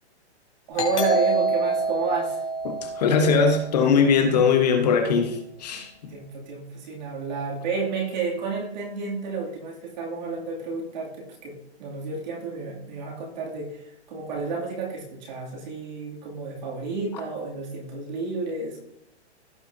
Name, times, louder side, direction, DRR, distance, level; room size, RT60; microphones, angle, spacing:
voice 1, 0.7-2.4 5.7-5.8 6.1-18.8, right 4 dB, 40° right, -2 dB, 2.6 m, -31 dB
Doorbell, 0.8-4.1, right 2 dB, 80° left, 2.9 m, -27 dB
voice 2, 2.8-6.1, left 5 dB, 35° left, 5 dB, 1.2 m, -21 dB
16.5 x 5.7 x 2.7 m, 0.83 s
hypercardioid pair, 175°, 34 cm